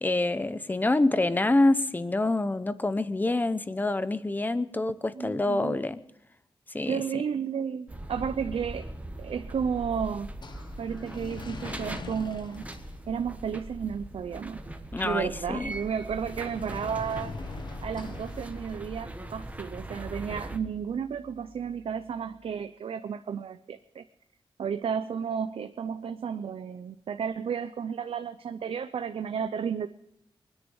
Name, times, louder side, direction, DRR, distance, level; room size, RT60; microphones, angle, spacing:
voice 1, 0.0-6.0 6.7-7.0 14.9-15.7, left 2 dB, 20° left, 13 dB, 0.8 m, -26 dB
voice 2, 5.2-5.8 6.9-8.9 9.2-10.3 10.8-12.7 13.1-14.7 15.0-17.4 17.8-24.0 24.6-29.9, right 7 dB, 85° right, 9 dB, 0.6 m, -32 dB
sound 1, 7.9-20.6, right 1 dB, 15° right, 1.2 m, -41 dB
sound 2, 9.3-22.4, left 4 dB, 50° left, 1.2 m, -46 dB
23.5 x 10.0 x 5.5 m, 0.80 s
wide cardioid pair, 140°, 9 cm